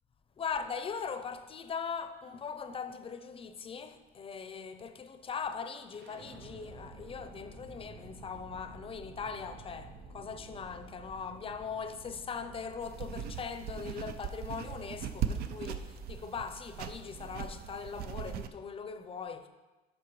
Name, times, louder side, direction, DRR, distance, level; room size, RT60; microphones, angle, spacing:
voice 1, 0.4-19.5, left 6 dB, 35° left, 0.6 m, -40 dB
sound 1, 5.9-17.8, right 2 dB, 90° right, 1.3 m, -52 dB
sound 2, 12.8-18.5, right 8 dB, 65° right, 0.5 m, -39 dB
12.0 x 4.7 x 3.2 m
cardioid pair, 110°, 17 cm